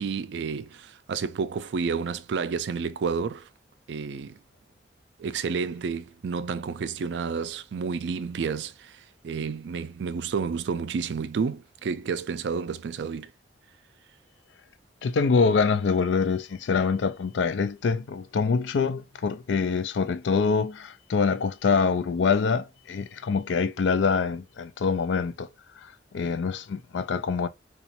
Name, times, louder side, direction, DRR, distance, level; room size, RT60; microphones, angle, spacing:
voice 1, 0.0-3.5 3.9-4.4 5.2-13.3, right 5 dB, 70° right, 0.4 m, -30 dB
voice 2, 15.0-25.5 25.8-27.5, left 5 dB, 80° left, 0.4 m, -25 dB
4.0 x 2.3 x 2.7 m
head